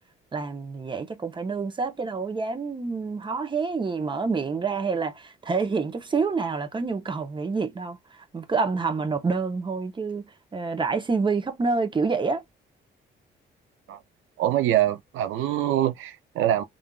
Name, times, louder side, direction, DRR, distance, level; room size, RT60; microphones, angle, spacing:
voice 1, 0.3-10.2 10.5-12.4, right 4 dB, 25° right, 0.8 m, -27 dB
voice 2, 14.4-16.6, right 12 dB, 90° right, 0.5 m, -24 dB
3.5 x 2.5 x 2.3 m
cardioid pair, 90°, 20 cm